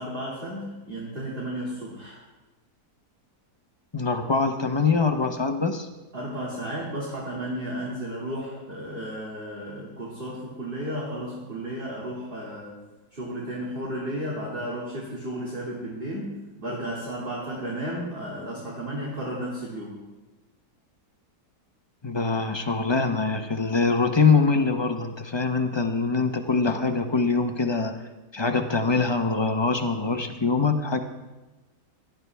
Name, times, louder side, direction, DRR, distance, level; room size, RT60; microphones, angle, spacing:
voice 1, 0.0-2.2 6.1-12.7 13.1-16.3 16.6-20.0, right 1 dB, 35° right, -5 dB, 2.5 m, -33 dB
voice 2, 3.9-5.9 22.0-28.0 28.3-31.0, left 4 dB, 25° left, 5 dB, 0.5 m, -23 dB
18.0 x 12.0 x 3.4 m, 1.1 s
omnidirectional pair, 1.7 m